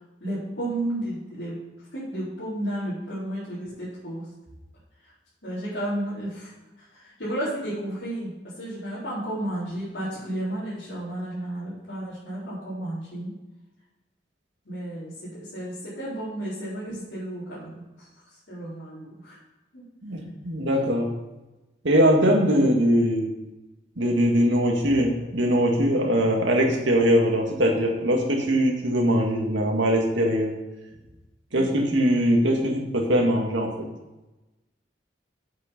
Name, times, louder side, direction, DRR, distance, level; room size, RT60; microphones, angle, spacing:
voice 1, 0.2-1.5 1.9-4.3 5.0-5.1 5.4-13.3 14.6-15.1 15.4-19.3 19.7-19.8 31.5-31.9, right 1 dB, 75° left, -12 dB, 4.1 m, -33 dB
voice 2, 20.0-21.1 21.8-23.3 24.0-30.5 31.5-33.9, equal, 85° right, 1 dB, 1.9 m, -21 dB
8.7 x 7.8 x 5.3 m, 1.0 s
head